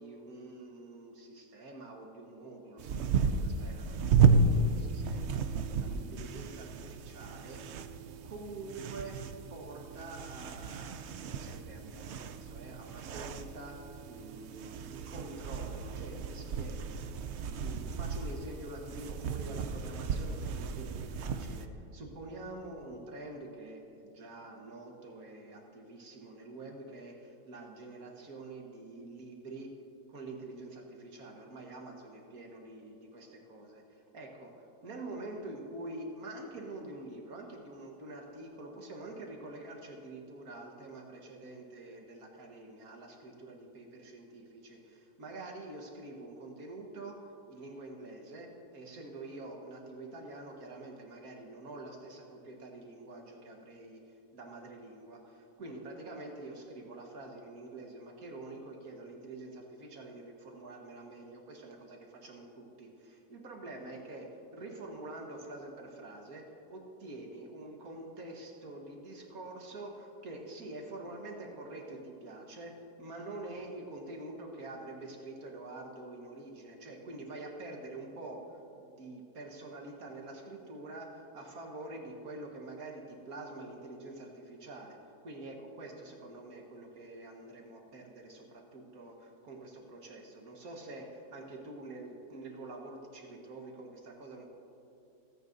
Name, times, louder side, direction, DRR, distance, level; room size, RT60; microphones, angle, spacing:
voice 1, 0.0-7.6 8.2-9.2 9.5-10.9 11.4-17.2 17.5-29.7 30.1-47.2 47.5-94.5, right 2 dB, 55° right, 1 dB, 1.8 m, -46 dB
sound 1, 2.8-21.7, right 5 dB, 85° right, 0.6 m, -33 dB
27.0 x 9.3 x 2.7 m, 2.8 s
omnidirectional pair, 1.9 m